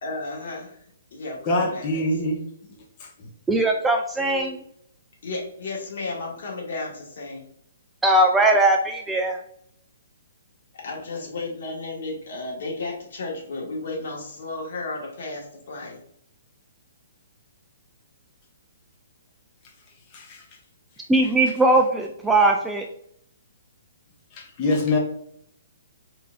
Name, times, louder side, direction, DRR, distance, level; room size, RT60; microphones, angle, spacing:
voice 1, 0.0-0.8 1.1-2.3 5.2-7.4 10.8-16.0, left 3 dB, 60° left, -2 dB, 1.6 m, -33 dB
voice 2, 1.5-2.4 3.0-3.1 20.1-20.4 24.3-25.0, left 2 dB, 25° left, -1 dB, 0.8 m, -24 dB
voice 3, 3.5-4.6 8.0-9.4 21.1-22.9, right 2 dB, 5° right, 3 dB, 0.3 m, -20 dB
4.3 x 3.8 x 2.5 m, 0.68 s
hypercardioid pair, 160°, 0 cm